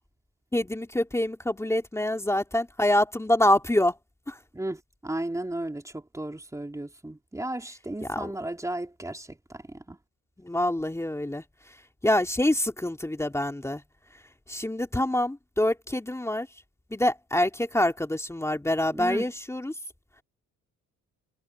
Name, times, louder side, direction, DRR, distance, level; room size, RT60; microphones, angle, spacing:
voice 1, 0.5-3.9 4.3-4.4 8.0-8.3 10.4-11.4 12.0-13.8 14.5-16.5 16.9-19.7, left 1 dB, 10° left, 2.9 m, -26 dB
voice 2, 4.5-9.6 9.9-10.0 18.9-19.3, right 1 dB, 10° right, 3.4 m, -34 dB
cardioid pair, 90°, 30 cm